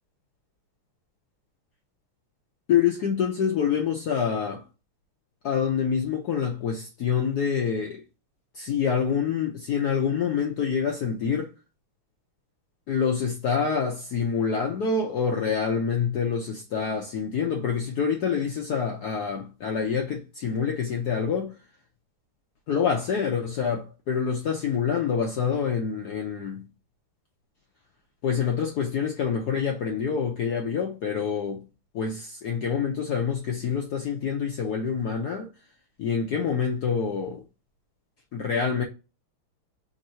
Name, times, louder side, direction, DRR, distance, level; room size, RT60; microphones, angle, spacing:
voice 1, 2.7-4.6 5.4-8.0 8.5-11.5 12.9-21.5 22.7-26.7 28.2-31.6 31.9-35.5 36.0-37.4 38.3-38.8, left 6 dB, 70° left, 0.9 m, -26 dB
3.7 x 2.6 x 4.2 m
omnidirectional pair, 2.4 m